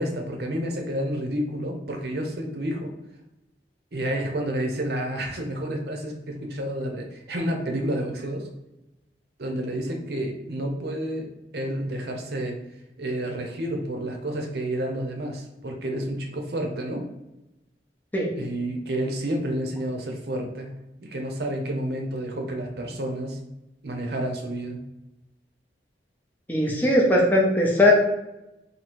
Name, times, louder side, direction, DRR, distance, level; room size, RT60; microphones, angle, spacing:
voice 1, 0.0-2.9 3.9-8.5 9.4-11.3 11.5-12.6 13.0-17.1 18.4-20.7 21.0-23.4 23.8-24.8, right 1 dB, 60° right, 2 dB, 0.7 m, -30 dB
voice 2, 26.5-27.9, left 1 dB, 10° left, -3 dB, 0.6 m, -19 dB
2.9 x 2.8 x 4.3 m, 0.93 s
head